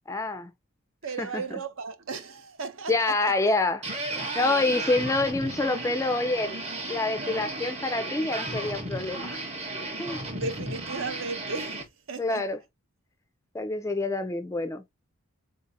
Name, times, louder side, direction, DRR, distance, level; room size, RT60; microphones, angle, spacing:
voice 1, 0.1-0.5 1.2-1.3 2.9-3.8 4.3-6.5 6.9-9.4 10.0-10.2 12.2-12.6 13.5-14.8, left 2 dB, 15° left, 0.3 m, -27 dB
voice 2, 1.0-3.4 4.4-4.7 10.3-12.4, right 4 dB, 60° right, 0.6 m, -35 dB
sound 1, 3.8-11.8, right 2 dB, 30° right, 0.8 m, -34 dB
4.0 x 2.6 x 2.6 m
head